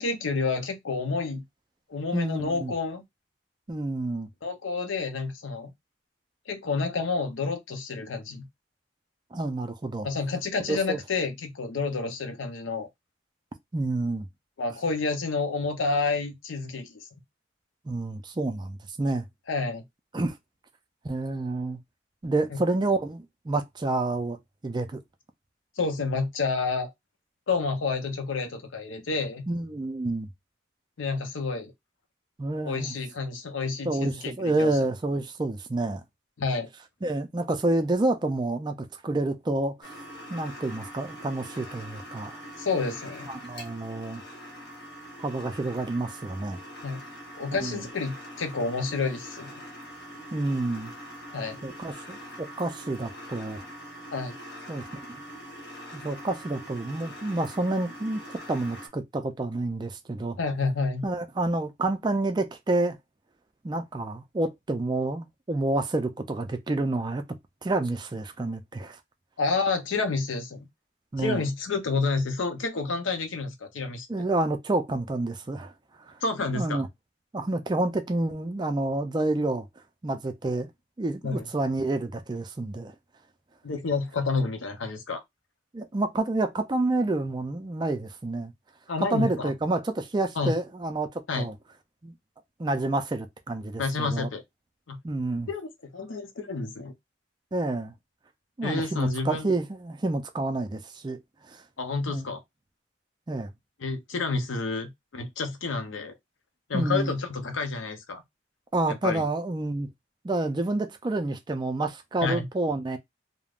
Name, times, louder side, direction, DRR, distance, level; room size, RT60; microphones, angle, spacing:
voice 1, 0.0-1.4 1.9-3.0 4.4-5.7 6.5-8.5 10.0-12.9 14.6-17.0 19.5-19.8 22.5-22.6 25.8-26.9 27.5-29.4 31.0-31.7 32.6-34.8 36.4-36.7 42.6-43.3 46.8-47.0 47.3-49.5 51.3-51.6 54.1-54.3 60.4-61.1 69.4-70.7 71.2-74.1 76.2-76.8 81.2-81.5 83.6-85.2 88.9-89.5 90.4-90.5 91.3-91.5 93.8-94.4 94.9-95.0 95.5-96.9 98.6-99.5 101.8-102.4 103.8-106.1 106.7-108.2 108.9-109.3 112.2-112.5, left 4 dB, 85° left, 0.6 m, -29 dB
voice 2, 2.1-2.7 3.7-4.3 9.3-10.1 10.7-11.0 13.7-14.3 17.9-19.3 20.1-20.4 21.0-21.8 22.2-24.4 24.6-25.0 29.5-30.3 32.4-32.9 33.8-36.0 37.0-38.7 39.0-39.9 40.3-42.3 43.3-44.2 45.2-46.6 47.6-47.8 50.3-50.9 51.6-53.6 54.7-55.0 55.9-58.2 58.5-60.4 61.0-63.0 63.6-67.2 67.6-69.0 71.1-71.4 74.1-75.7 76.5-76.9 77.3-79.7 80.0-80.7 81.0-82.9 85.7-88.5 89.0-91.1 91.4-91.5 92.0-92.1 92.6-94.3 95.0-95.5 97.5-97.9 98.6-101.2 101.5-101.6 102.1-102.3 103.3-103.5 106.7-107.1 108.7-109.9 110.2-113.0, right 2 dB, 25° right, 0.3 m, -28 dB
sound 1, 39.8-58.9, equal, 55° left, 1.1 m, -43 dB
3.4 x 2.0 x 2.4 m
head